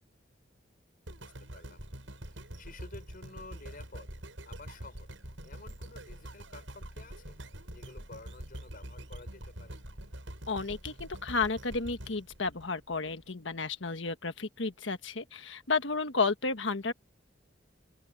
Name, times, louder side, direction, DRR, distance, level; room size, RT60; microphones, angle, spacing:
voice 1, 1.1-1.8 2.2-4.1 4.4-5.1 5.4-7.4 7.7-9.8, left 3 dB, 50° left, 6.2 m, -51 dB
sound 1, 1.1-13.3 13.8-13.9, right 1 dB, 90° right, 7.6 m, -45 dB
voice 2, 10.5-16.9, left 4 dB, 75° left, 1.5 m, -32 dB
open air
head